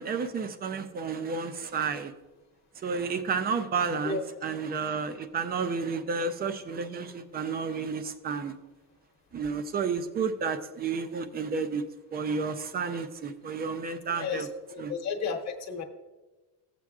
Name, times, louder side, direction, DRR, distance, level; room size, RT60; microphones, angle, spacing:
voice 1, 0.0-2.1 2.8-8.5 9.3-11.8 12.1-14.5 14.8-14.9, right 5 dB, 25° right, 10 dB, 0.4 m, -31 dB
voice 2, 14.2-14.5 14.9-15.8, left 5 dB, 40° left, 4 dB, 1.1 m, -32 dB
15.0 x 7.5 x 2.4 m, 1.2 s
cardioid pair, 165°, 40 cm